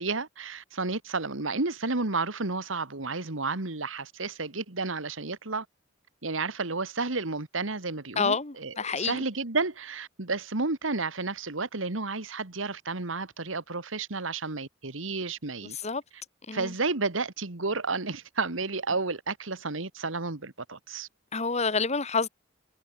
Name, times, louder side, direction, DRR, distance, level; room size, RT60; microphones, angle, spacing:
voice 1, 0.0-5.7 6.2-15.8 16.5-21.1, right 3 dB, 85° right, 2.0 m, -31 dB
voice 2, 8.2-9.2 15.8-16.0 16.5-16.7 21.3-22.3, left 4 dB, 35° left, 1.8 m, -28 dB
head